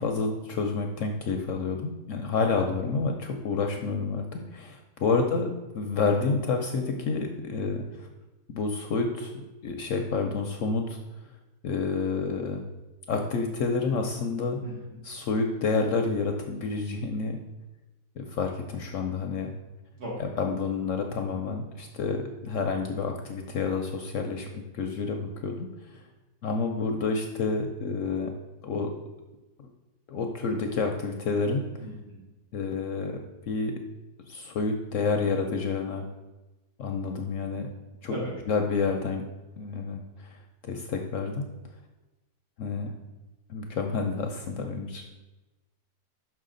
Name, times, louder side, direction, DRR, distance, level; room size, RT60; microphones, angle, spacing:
voice 1, 0.0-8.1 8.5-9.3 9.6-11.0 11.6-12.6 13.1-14.6 15.0-17.4 18.2-19.5 20.2-22.2 22.4-26.0 26.4-28.3 28.6-28.9 30.1-31.6 32.5-33.2 33.5-33.7 34.3-36.0 36.8-37.7 38.0-38.1 38.5-39.2 39.6-40.0 40.6-41.4 42.6-42.9 43.5-45.0, left 4 dB, 65° left, 3 dB, 0.8 m, -29 dB
voice 2, 5.1-5.4 14.6-15.0 20.0-20.2 31.8-32.2 38.1-38.3, equal, 75° right, -6 dB, 2.8 m, -37 dB
6.0 x 5.7 x 3.8 m, 1.1 s
omnidirectional pair, 1.7 m